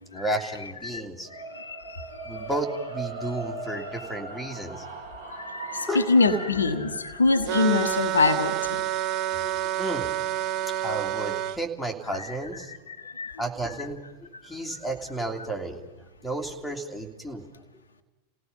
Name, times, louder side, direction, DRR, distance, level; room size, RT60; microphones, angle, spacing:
voice 1, 0.1-1.3 2.2-4.9 5.9-6.1 9.3-10.1 10.7-12.7 13.4-14.0 14.4-15.8 16.2-17.4, right 1 dB, ahead, 0 dB, 2.9 m, -32 dB
sound 1, 1.2-11.4, right 3 dB, 70° right, 6.2 m, -40 dB
voice 2, 1.5-2.4 5.4-8.8 12.2-12.4 12.7-13.4, left 3 dB, 75° left, 6 dB, 1.4 m, -25 dB
sound 2, 7.5-11.6, right 12 dB, 40° right, 0.7 m, -28 dB
29.5 x 17.5 x 5.5 m, 1.1 s
figure-of-eight pair, 90°, 0 cm